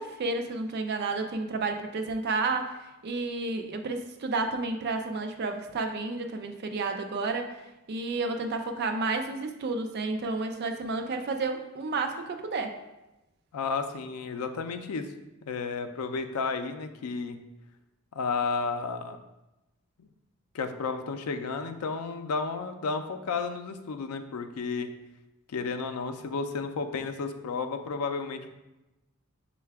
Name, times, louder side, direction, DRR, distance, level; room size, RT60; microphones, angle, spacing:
voice 1, 0.0-12.8, right 3 dB, 50° right, 5 dB, 0.4 m, -31 dB
voice 2, 13.5-15.1 15.4-17.4 18.1-19.2 20.0-20.1 20.5-24.9 25.5-28.5, left 4 dB, 85° left, 8 dB, 0.4 m, -32 dB
5.5 x 2.2 x 3.4 m, 0.98 s
head